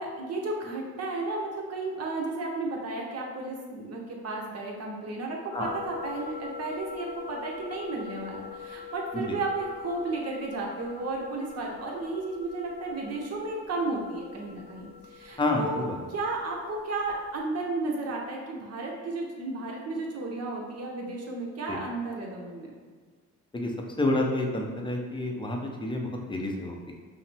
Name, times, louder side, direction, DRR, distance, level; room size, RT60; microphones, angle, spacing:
voice 1, 0.0-22.7, right 2 dB, 55° right, -1 dB, 1.0 m, -33 dB
sound 1, 5.5-17.4, left 6 dB, 10° right, 1.3 m, -44 dB
voice 2, 15.4-16.0 21.7-21.8 23.5-23.7 24.0-26.9, left 2 dB, 15° left, 1 dB, 0.7 m, -29 dB
5.5 x 2.1 x 3.4 m, 1.5 s
cardioid pair, 90°, 30 cm